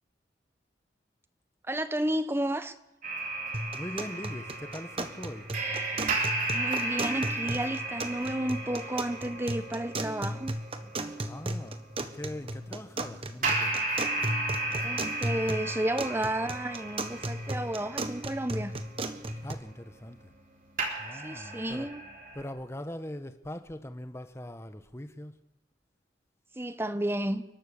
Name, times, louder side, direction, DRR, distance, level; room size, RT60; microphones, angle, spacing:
voice 1, 1.7-2.7 6.5-10.5 14.8-18.7 21.2-22.0 26.6-27.4, right 1 dB, 15° right, 0.9 m, -32 dB
sound 1, 3.0-11.8 13.4-20.5 20.8-22.4, right 2 dB, 50° right, 3.7 m, -35 dB
sound 2, 3.5-19.5, right 1 dB, 30° right, 1.3 m, -36 dB
voice 2, 3.7-5.5 11.2-13.8 19.4-20.3 21.0-21.9 22.3-25.3, left 1 dB, 15° left, 1.1 m, -41 dB
29.5 x 12.5 x 7.1 m
head